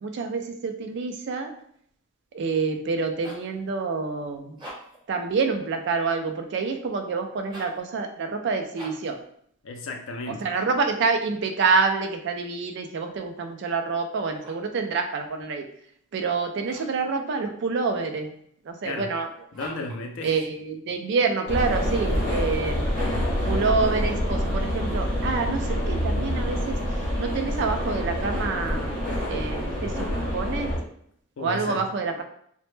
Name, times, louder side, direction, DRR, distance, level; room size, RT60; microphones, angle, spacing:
voice 1, 0.0-1.5 2.3-4.6 5.1-9.2 10.3-15.6 16.1-18.3 18.6-19.3 20.2-23.0 23.5-30.7 31.4-32.2, right 4 dB, 60° right, 5 dB, 0.3 m, -27 dB
sound 1, 3.2-3.5 4.5-5.1 7.4-7.8 8.7-9.2 14.2-14.8 16.6-17.0 19.5-20.0, equal, 20° right, 0.7 m, -44 dB
voice 2, 9.6-10.5 18.8-19.1 19.5-20.4 31.4-31.8, left 2 dB, 70° left, 4 dB, 0.4 m, -33 dB
sound 2, 21.5-30.8, equal, 45° left, 0.8 m, -26 dB
2.0 x 2.0 x 3.1 m, 0.67 s
head